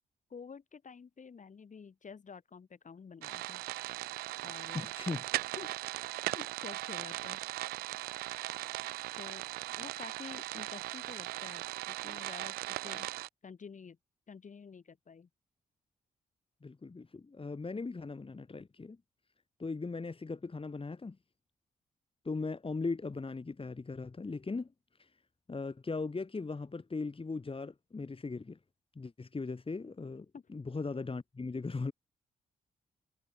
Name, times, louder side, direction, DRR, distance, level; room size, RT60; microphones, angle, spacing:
voice 1, 0.3-3.6 4.4-4.9 5.6-5.7 6.1-7.4 9.2-9.4 9.8-12.6 12.8-13.1 13.4-14.0 14.3-15.3 30.3-30.4, left 6 dB, 50° left, 6.2 m, -49 dB
sound 1, 3.2-13.3, right 17 dB, 85° right, 0.5 m, -38 dB
voice 2, 4.7-5.3 16.6-19.0 19.6-21.2 22.3-24.7 25.0-25.1 25.5-28.6 29.0-31.9, left 3 dB, 35° left, 5.2 m, -38 dB
supercardioid pair, 50°, 16 cm